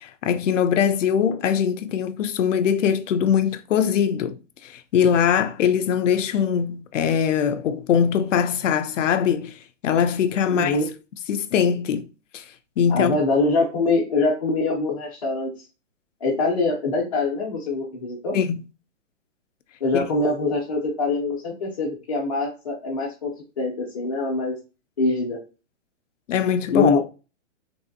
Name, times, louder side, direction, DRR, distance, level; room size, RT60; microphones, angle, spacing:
voice 1, 0.0-10.8 11.3-12.4 12.8-13.1 18.3-18.7 19.9-20.0 26.3-27.0, left 8 dB, 75° left, 0.5 m, -22 dB
voice 2, 10.5-10.8 12.9-15.5 16.2-18.3 19.8-24.5 25.0-25.4 26.7-27.0, left 3 dB, 30° left, 0.5 m, -24 dB
3.3 x 2.5 x 2.5 m
hypercardioid pair, 170°, 38 cm